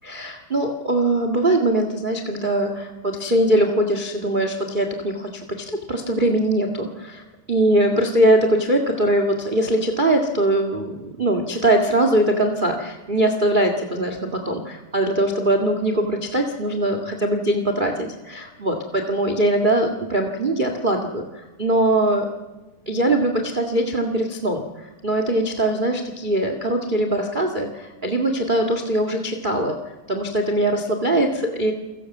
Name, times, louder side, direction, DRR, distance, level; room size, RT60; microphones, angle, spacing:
voice 1, 0.0-7.2 7.5-22.3 22.8-29.8 30.1-31.7, right 1 dB, 20° right, 5 dB, 1.3 m, -21 dB
29.0 x 17.0 x 7.2 m, 1.2 s
omnidirectional pair, 3.9 m